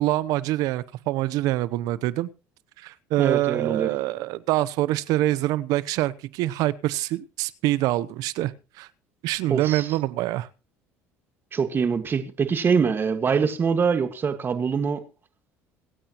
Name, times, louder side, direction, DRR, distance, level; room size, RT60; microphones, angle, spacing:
voice 1, 0.0-2.3 2.8-8.5 8.8-8.9 9.2-10.5, right 16 dB, 70° right, 19 dB, 0.8 m, -25 dB
voice 2, 3.2-3.9 9.5-10.0 11.5-15.0, right 6 dB, 35° right, 9 dB, 1.7 m, -24 dB
25.5 x 8.8 x 3.0 m, 0.32 s
supercardioid pair, 95°, 6 cm